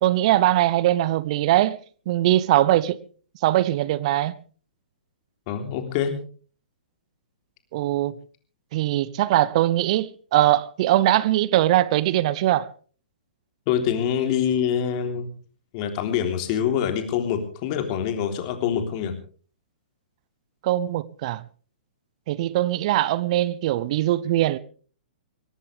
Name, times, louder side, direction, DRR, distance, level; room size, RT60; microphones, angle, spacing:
voice 1, 0.0-1.8 2.1-3.0 3.4-4.3 7.7-8.2 8.7-12.7 20.6-21.4 22.3-24.6, right 14 dB, 45° right, 0.8 m, -21 dB
voice 2, 5.5-6.1 13.7-15.3 15.7-19.2, left 8 dB, 40° left, 3.5 m, -25 dB
22.5 x 18.0 x 3.4 m
figure-of-eight pair, 115°, 5 cm